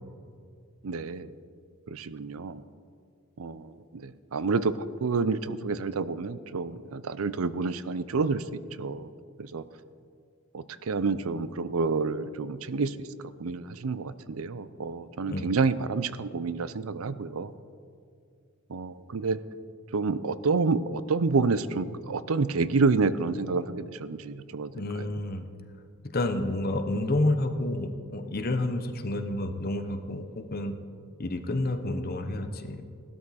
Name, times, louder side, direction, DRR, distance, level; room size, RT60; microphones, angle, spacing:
voice 1, 0.8-1.3 1.9-2.6 3.4-3.6 4.3-8.4 8.8-9.1 9.5-9.6 10.5-12.9 13.4-17.5 18.7-19.4 19.9-24.7 25.0-25.1, right 4 dB, 85° right, 15 dB, 0.6 m, -28 dB
voice 2, 24.7-25.5 26.1-30.7 31.2-32.8, left 1 dB, 45° left, 7 dB, 0.9 m, -29 dB
16.0 x 12.0 x 4.2 m, 2.3 s
head